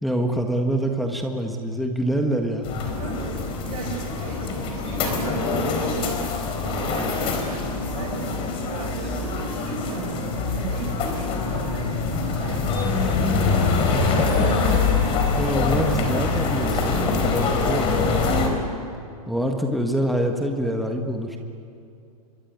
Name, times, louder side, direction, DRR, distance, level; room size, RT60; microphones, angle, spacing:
voice 1, 0.0-2.7 13.9-14.0 14.7-14.8 15.4-18.3 19.3-21.4, right 1 dB, ahead, 2 dB, 1.6 m, -25 dB
sound 1, 2.6-18.5, left 4 dB, 30° left, 4.3 m, -24 dB
voice 2, 2.9-3.4 3.6-6.2 6.6-8.4 8.6-10.2 10.5-12.9 14.1-15.1, right 4 dB, 65° right, 0 dB, 5.8 m, -35 dB
25.0 x 24.5 x 9.5 m, 2.6 s
supercardioid pair, 155°, 19 cm